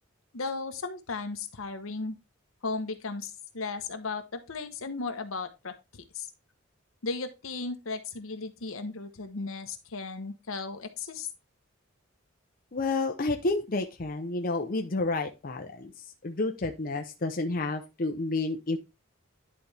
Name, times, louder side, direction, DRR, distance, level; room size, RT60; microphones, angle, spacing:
voice 1, 0.3-2.2 2.6-6.3 7.0-11.3, left 4 dB, 75° left, 8 dB, 1.0 m, -36 dB
voice 2, 12.7-15.9 16.2-18.8, left 2 dB, 45° left, 4 dB, 0.7 m, -30 dB
10.5 x 4.2 x 3.3 m, 0.25 s
head